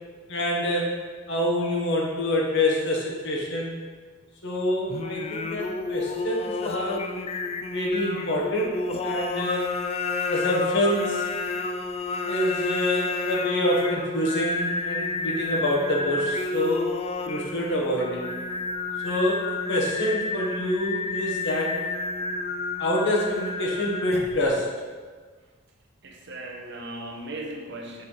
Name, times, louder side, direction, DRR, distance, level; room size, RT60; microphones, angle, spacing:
voice 1, 0.3-0.9 1.3-3.7 4.4-7.1 7.7-9.7 10.3-11.2 12.3-16.9 17.2-18.3 19.0-21.8 22.8-24.7, left 1 dB, 65° left, -2 dB, 1.3 m, -26 dB
Singing, 4.9-24.5, left 3 dB, 30° left, 0.3 m, -30 dB
voice 2, 26.0-28.1, right 1 dB, 60° right, 2 dB, 0.8 m, -37 dB
6.2 x 3.2 x 5.4 m, 1.5 s
head